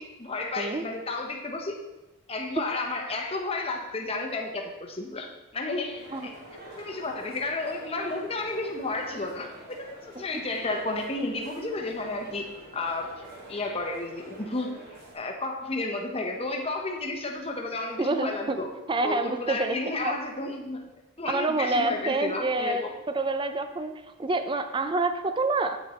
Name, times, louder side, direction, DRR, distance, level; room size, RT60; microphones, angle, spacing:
voice 1, 0.0-1.8 2.3-6.3 6.7-13.2 13.5-14.8 15.1-18.7 19.0-20.8 21.2-22.9, left 2 dB, 25° left, 2 dB, 0.9 m, -32 dB
sound 1, 5.9-15.1, right 1 dB, 45° right, 2.3 m, -46 dB
voice 2, 18.0-18.6 18.9-19.8 20.0-20.2 21.3-22.8 23.1-25.8, right 2 dB, 20° right, 9 dB, 0.4 m, -27 dB
8.5 x 6.6 x 4.3 m, 1.0 s
head